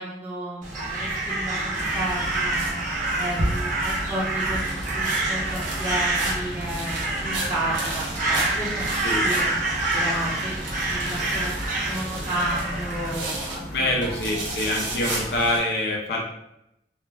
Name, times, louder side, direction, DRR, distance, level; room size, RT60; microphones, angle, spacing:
voice 1, 0.0-2.8 3.2-8.9 9.2-9.4 9.9-10.5 10.9-11.6 11.9-14.1, right 1 dB, 10° right, -7 dB, 0.7 m, -32 dB
Crow, 0.6-13.3, right 2 dB, 45° right, 0.6 m, -27 dB
sound 1, 1.7-15.6, right 1 dB, 80° right, 0.8 m, -33 dB
voice 2, 13.7-16.3, left 1 dB, 60° left, -1 dB, 0.5 m, -25 dB
2.4 x 2.1 x 3.2 m, 0.84 s
head